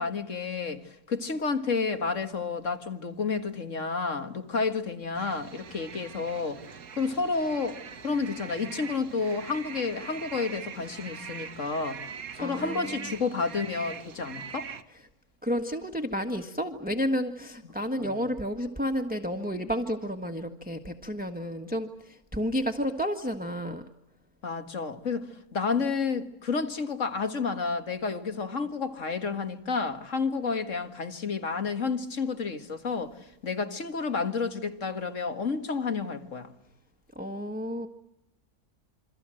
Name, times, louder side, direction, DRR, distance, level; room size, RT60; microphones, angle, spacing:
voice 1, 0.0-6.6 7.0-7.8 8.0-12.0 12.4-14.7 18.0-18.1 24.4-33.1 33.4-36.5, left 4 dB, 55° left, 2.0 m, -30 dB
sound 1, 5.1-14.8, right 7 dB, 70° right, 1.7 m, -42 dB
voice 2, 12.4-13.2 15.4-23.8 37.1-37.9, equal, 5° right, 1.4 m, -31 dB
28.0 x 24.0 x 7.7 m
omnidirectional pair, 1.6 m